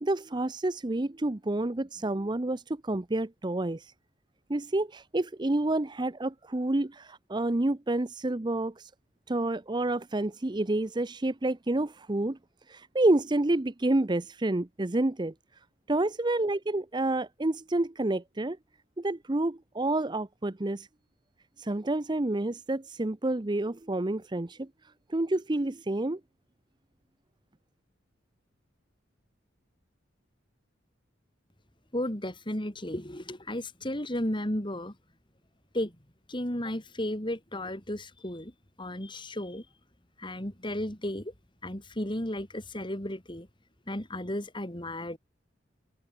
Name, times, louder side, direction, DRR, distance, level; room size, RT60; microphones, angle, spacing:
voice 1, 0.0-3.9 4.5-8.9 9.3-12.4 12.7-15.3 15.9-18.6 19.0-20.9 21.6-24.7 25.1-26.2, right 2 dB, 25° right, 0.7 m, -29 dB
voice 2, 31.9-35.0 35.7-36.0 36.3-38.5 38.8-39.7 40.2-41.3 41.6-43.5 43.9-45.2, left 1 dB, 25° left, 3.8 m, -34 dB
head